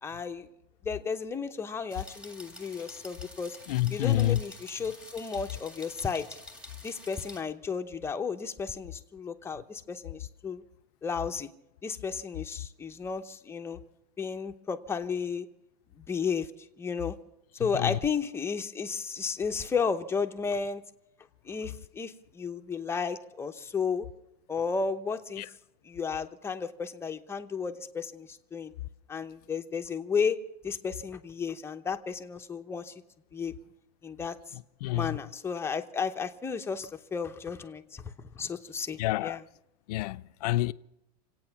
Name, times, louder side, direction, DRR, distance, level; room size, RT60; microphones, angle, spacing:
voice 1, 0.0-0.5 0.8-3.6 3.9-6.3 6.8-10.6 11.0-11.5 11.8-13.8 14.2-15.5 16.1-16.5 16.8-17.2 17.6-20.8 21.4-24.1 24.5-25.4 25.8-28.7 29.1-32.9 33.3-33.5 34.0-34.4 34.9-39.4, left 5 dB, 10° left, 0.8 m, -33 dB
sound 1, 1.9-7.4, left 2 dB, 5° right, 1.9 m, -48 dB
voice 2, 3.7-4.4 17.7-18.0 25.4-25.5 34.5-35.2 39.0-39.4 39.9-40.7, left 15 dB, 70° left, 0.6 m, -28 dB
26.5 x 8.9 x 5.9 m
supercardioid pair, 140°, 21 cm